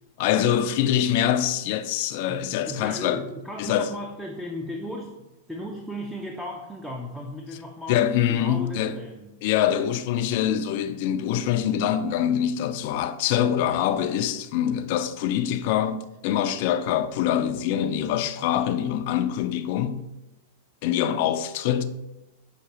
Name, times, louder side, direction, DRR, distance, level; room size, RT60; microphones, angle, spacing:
voice 1, 0.2-3.2 3.6-3.9 7.9-9.0 9.4-20.0 20.8-21.8, left 10 dB, 55° left, 0.4 m, -24 dB
voice 2, 2.3-9.3, equal, 5° right, 0.5 m, -36 dB
5.8 x 2.8 x 3.0 m
hypercardioid pair, 110°, 0 cm